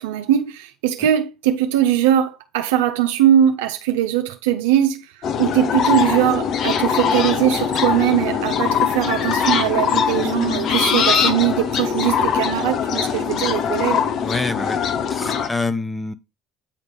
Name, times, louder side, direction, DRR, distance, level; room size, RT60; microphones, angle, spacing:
voice 1, 0.0-5.1 5.4-14.1, right 11 dB, 80° right, 0.5 m, -20 dB
sound 1, 5.2-15.5, left 7 dB, 55° left, 0.9 m, -21 dB
voice 2, 14.2-14.8 15.1-16.1, left 3 dB, 15° left, 0.7 m, -26 dB
8.9 x 3.3 x 5.3 m
hypercardioid pair, 60°, 0 cm